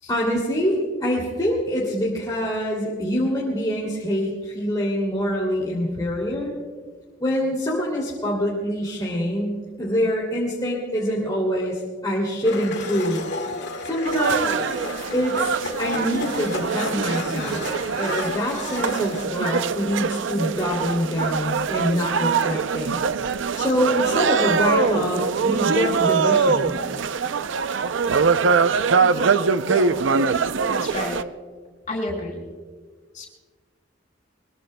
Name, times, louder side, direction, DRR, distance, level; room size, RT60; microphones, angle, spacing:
voice 1, 0.1-6.5 7.2-13.2 13.8-14.6 15.1-17.6 18.0-23.0 23.5-26.8, equal, 20° left, -5 dB, 2.7 m, -25 dB
Domestic sounds home sounds, 12.4-19.2, left 3 dB, 65° left, 2.0 m, -33 dB
sound 1, 14.0-31.2, right 5 dB, 75° right, 0.5 m, -23 dB
voice 2, 29.0-29.9 30.6-31.2 31.9-32.5 33.1-33.3, left 2 dB, 45° left, -2 dB, 6.0 m, -32 dB
23.5 x 22.5 x 2.2 m, 1.5 s
head